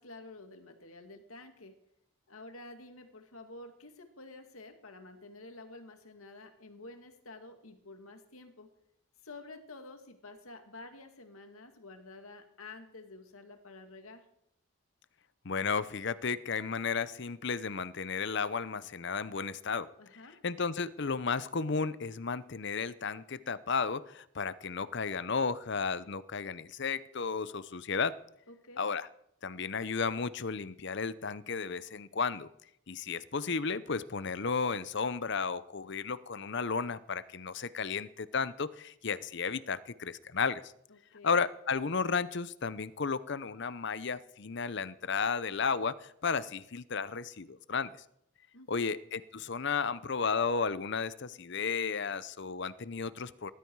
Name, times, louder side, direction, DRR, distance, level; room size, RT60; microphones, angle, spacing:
voice 1, 0.0-1.8 2.3-8.7 9.2-14.3 20.0-20.4 28.5-28.8 40.9-41.4 48.5-48.9, left 2 dB, 85° left, 6 dB, 2.3 m, -50 dB
voice 2, 15.4-19.9 20.4-28.1 28.8-29.1 29.4-32.5 32.9-40.7 41.2-47.9 48.7-53.5, left 5 dB, 55° left, 16 dB, 0.7 m, -33 dB
19.0 x 13.0 x 4.7 m, 0.75 s
head